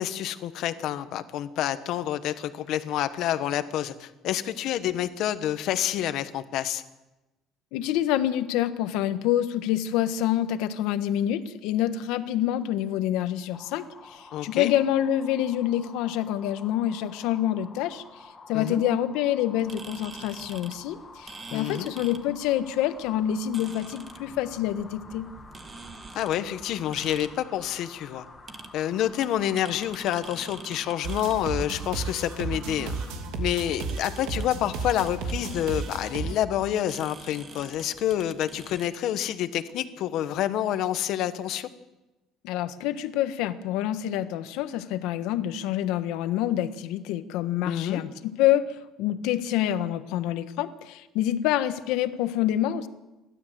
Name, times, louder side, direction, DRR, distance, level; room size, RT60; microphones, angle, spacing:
voice 1, 0.0-6.8 14.3-14.7 18.5-18.8 21.5-21.9 26.1-28.3 28.7-32.9 33.4-41.7 47.6-48.0, left 11 dB, 55° left, 11 dB, 1.2 m, -28 dB
voice 2, 7.7-18.0 18.5-25.3 42.4-52.9, left 12 dB, 80° left, 10 dB, 1.4 m, -27 dB
sound 1, 13.5-33.1, left 3 dB, 15° left, 2.0 m, -49 dB
sound 2, 19.6-38.9, right 4 dB, 20° right, 1.4 m, -47 dB
sound 3, 31.0-36.3, right 4 dB, 85° right, 2.8 m, -33 dB
29.5 x 12.5 x 7.7 m, 1.1 s
cardioid pair, 170°, 0 cm